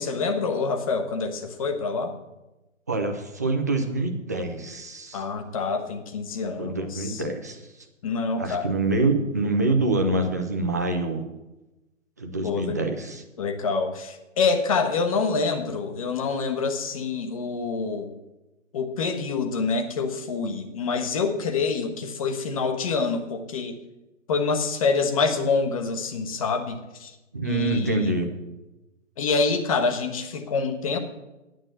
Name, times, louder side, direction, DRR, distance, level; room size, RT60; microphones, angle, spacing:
voice 1, 0.0-2.2 5.1-7.2 8.0-8.7 12.4-12.8 13.4-18.1 18.7-23.8 24.3-27.1 27.4-28.1 29.2-31.0, left 4 dB, 25° left, 6 dB, 1.2 m, -26 dB
voice 2, 2.9-5.2 6.6-7.6 8.4-11.2 12.2-13.2 27.3-28.3, right 2 dB, 15° right, 4 dB, 0.5 m, -26 dB
9.2 x 8.6 x 7.8 m, 1.0 s
figure-of-eight pair, 140°, 39 cm